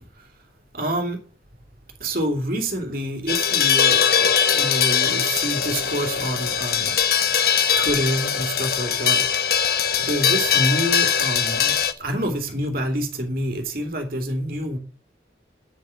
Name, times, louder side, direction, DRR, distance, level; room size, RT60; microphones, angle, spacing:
voice 1, 0.7-1.2 2.0-7.0 7.8-9.7 10.0-11.7 12.0-14.8, right 1 dB, 55° right, 2.9 m, -27 dB
sound 1, 3.3-11.9, left 8 dB, 55° left, 1.1 m, -21 dB
9.9 x 7.6 x 7.1 m
head